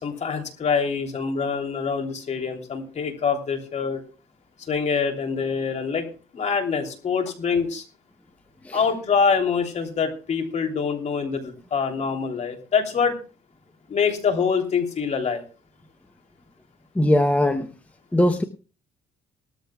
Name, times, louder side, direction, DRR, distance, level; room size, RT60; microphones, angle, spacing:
voice 1, 0.0-4.0 4.7-6.1 6.3-7.8 8.7-13.2 13.9-15.4, left 5 dB, 40° left, 4 dB, 3.1 m, -25 dB
voice 2, 17.0-17.7 18.1-18.4, left 1 dB, 10° left, 7 dB, 0.9 m, -20 dB
19.5 x 13.5 x 2.3 m, 0.35 s
cardioid pair, 110°, 17 cm